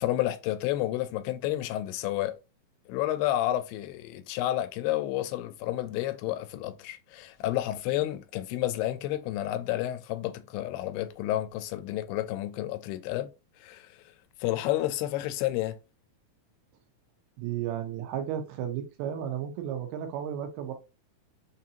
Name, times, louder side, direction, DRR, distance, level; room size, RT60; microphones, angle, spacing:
voice 1, 0.0-2.3 2.9-13.3 13.6-13.9 14.4-15.8, left 14 dB, 85° left, 2.6 m, -30 dB
voice 2, 17.4-20.7, right 10 dB, 90° right, 2.8 m, -33 dB
6.3 x 2.8 x 2.5 m
omnidirectional pair, 4.5 m